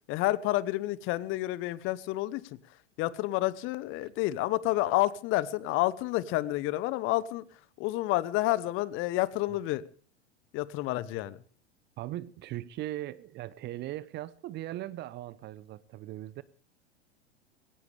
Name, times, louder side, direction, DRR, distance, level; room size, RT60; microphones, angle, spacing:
voice 1, 0.1-2.4 3.0-7.5 7.8-9.8 10.5-11.4, left 17 dB, 35° left, 19 dB, 0.9 m, -29 dB
voice 2, 12.0-16.4, right 14 dB, 30° right, 19 dB, 0.8 m, -39 dB
20.5 x 17.5 x 3.4 m, 0.40 s
figure-of-eight pair, 90°, 34 cm